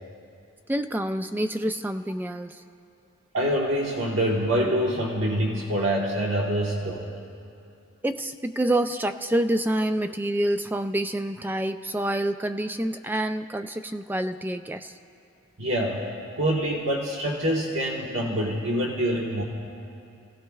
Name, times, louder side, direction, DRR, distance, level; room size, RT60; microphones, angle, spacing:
voice 1, 0.7-2.6 8.0-14.9, right 1 dB, 10° right, 8 dB, 0.3 m, -27 dB
voice 2, 3.3-7.1 15.6-16.1 16.4-19.4, right 1 dB, 65° right, -2 dB, 1.3 m, -25 dB
29.5 x 17.0 x 2.4 m, 2.6 s
head